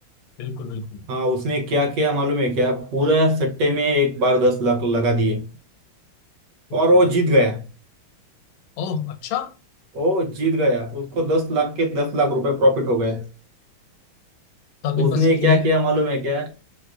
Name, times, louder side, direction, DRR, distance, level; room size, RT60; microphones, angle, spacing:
voice 1, 0.4-1.1 6.7-7.0 8.8-9.6 14.8-15.7, left 7 dB, 80° left, 1.4 m, -25 dB
voice 2, 1.1-5.4 6.7-7.6 9.9-13.2 15.0-16.5, equal, 70° right, 1.2 m, -20 dB
4.7 x 2.3 x 2.4 m
omnidirectional pair, 2.3 m